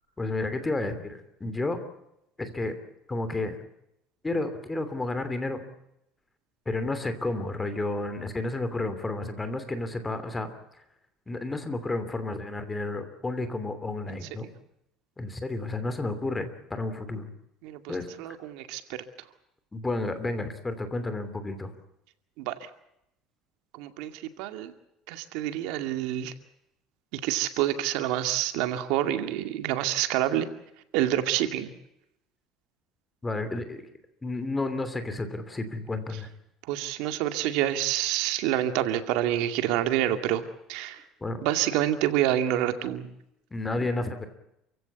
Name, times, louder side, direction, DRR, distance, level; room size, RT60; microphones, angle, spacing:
voice 1, 0.2-1.8 2.4-2.7 3.1-3.6 4.2-5.6 6.6-10.5 11.3-14.5 15.2-17.3 17.9-18.4 19.7-21.7 33.2-33.9 34.2-36.3 41.2-41.4 43.5-44.3, left 2 dB, 10° left, 10 dB, 2.9 m, -31 dB
voice 2, 17.6-17.9 18.2-19.0 22.4-22.5 23.7-24.7 25.1-26.3 27.1-30.5 30.9-31.7 36.7-40.4 40.7-41.0 41.4-43.1, right 12 dB, 75° right, 8 dB, 2.2 m, -27 dB
28.5 x 16.5 x 8.2 m, 0.82 s
cardioid pair, 150°, 0 cm